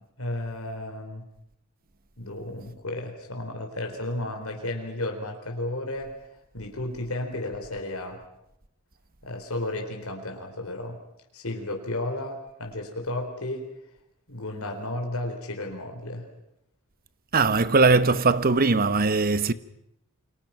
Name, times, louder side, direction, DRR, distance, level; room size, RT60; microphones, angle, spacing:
voice 1, 0.2-1.2 2.2-6.1 6.5-8.2 9.2-11.0 11.3-13.7 14.3-16.3, left 1 dB, 70° left, 4.3 m, -33 dB
voice 2, 17.3-19.5, right 3 dB, 45° right, 1.0 m, -20 dB
29.0 x 25.0 x 5.9 m
head